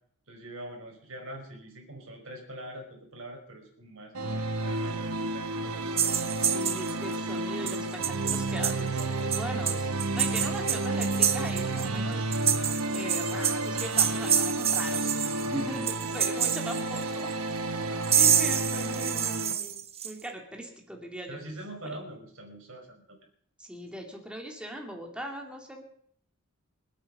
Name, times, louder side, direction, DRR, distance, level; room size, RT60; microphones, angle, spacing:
voice 1, 0.3-5.9 10.3-10.4 15.4-16.4 21.3-23.2, right 1 dB, 65° right, 1 dB, 5.4 m, -44 dB
sound 1, 4.1-19.5, right 2 dB, 80° right, 1.5 m, -31 dB
sound 2, 6.0-7.1 7.7-7.8 8.0-9.0 9.3-11.9 12.1-15.5 15.8-17.3 18.0-20.1, right 9 dB, 30° right, 1.0 m, -27 dB
voice 2, 6.4-12.2 12.9-17.3 18.2-21.4 21.8-22.0 23.6-25.8, right 1 dB, 5° right, 1 dB, 2.8 m, -40 dB
26.5 x 9.0 x 5.5 m, 0.62 s
head